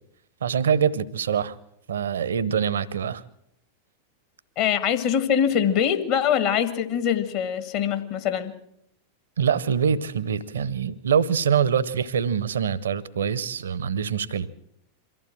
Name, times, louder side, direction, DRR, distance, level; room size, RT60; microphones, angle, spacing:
voice 1, 0.4-1.6 1.9-3.2 9.4-14.5, right 7 dB, 65° right, 0.9 m, -24 dB
voice 2, 4.6-8.6, left 8 dB, 45° left, 1.7 m, -23 dB
23.5 x 15.0 x 7.6 m
figure-of-eight pair, 90°, 0 cm